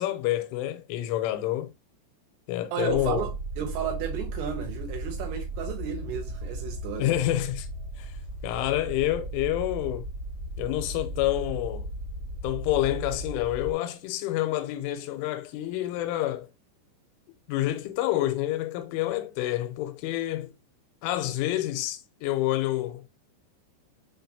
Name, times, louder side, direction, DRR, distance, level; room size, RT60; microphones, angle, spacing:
voice 1, 0.0-1.7 2.5-3.3 7.0-7.7 8.0-8.1 8.4-10.1 10.6-11.9 12.4-16.5 17.5-20.5 21.0-23.1, left 14 dB, 85° left, 3.0 m, -28 dB
voice 2, 2.7-3.3 3.6-7.1, right 8 dB, 75° right, 2.5 m, -33 dB
sound 1, 2.9-13.7, right 1 dB, 45° right, 1.1 m, -36 dB
7.0 x 2.8 x 2.6 m
omnidirectional pair, 5.4 m